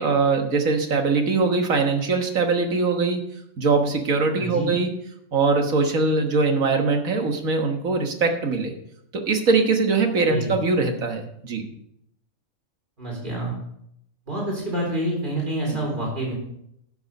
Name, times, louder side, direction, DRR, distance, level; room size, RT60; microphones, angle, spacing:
voice 1, 0.0-3.2 3.6-4.9 5.3-8.7 9.1-11.7 15.7-15.8, right 4 dB, 90° right, 4 dB, 1.9 m, -22 dB
voice 2, 4.4-4.7 10.3-10.5 13.0-13.5 14.3-16.3, right 1 dB, 35° right, -2 dB, 4.1 m, -27 dB
11.5 x 7.0 x 5.4 m, 0.74 s
omnidirectional pair, 1.4 m